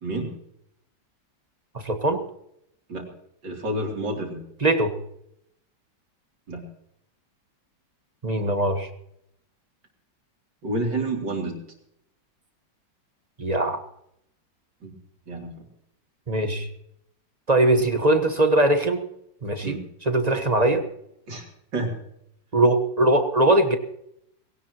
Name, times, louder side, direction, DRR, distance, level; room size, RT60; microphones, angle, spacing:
voice 1, 1.7-2.2 4.6-4.9 8.2-8.9 13.4-13.8 16.3-16.7 17.5-19.0 19.4-20.8 22.5-23.8, right 1 dB, 25° right, 6 dB, 1.3 m, -21 dB
voice 2, 3.4-4.4 6.5-6.7 10.6-11.6 14.8-15.0 15.3-15.5 19.6-19.8 21.3-21.5 21.7-21.9, right 2 dB, 90° right, 1 dB, 3.8 m, -29 dB
21.0 x 17.5 x 3.0 m, 0.75 s
omnidirectional pair, 1.9 m